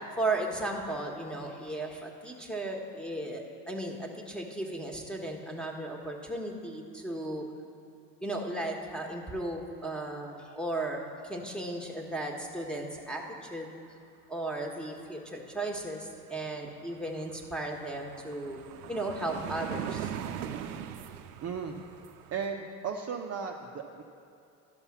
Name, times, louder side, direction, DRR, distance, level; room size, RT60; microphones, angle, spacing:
voice 1, 0.2-7.4 8.2-13.7 14.3-18.6 18.9-20.1, right 2 dB, ahead, 0 dB, 1.3 m, -35 dB
sound 1, 16.4-16.5 16.8-22.5, right 9 dB, 90° right, 0.6 m, -40 dB
voice 2, 21.4-21.8 22.3-24.0, right 6 dB, 35° right, 1 dB, 0.7 m, -35 dB
12.5 x 5.4 x 5.9 m, 2.5 s
supercardioid pair, 85°, 45 cm